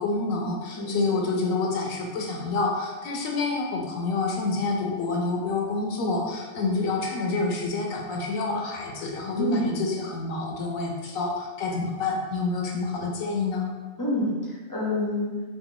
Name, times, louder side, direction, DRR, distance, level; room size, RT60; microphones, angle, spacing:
voice 1, 0.0-13.7, left 3 dB, 75° left, 0 dB, 1.0 m, -28 dB
voice 2, 0.8-1.2 9.4-9.7 14.0-15.3, left 1 dB, 25° left, -6 dB, 0.4 m, -27 dB
3.0 x 2.6 x 3.7 m, 1.3 s
omnidirectional pair, 1.5 m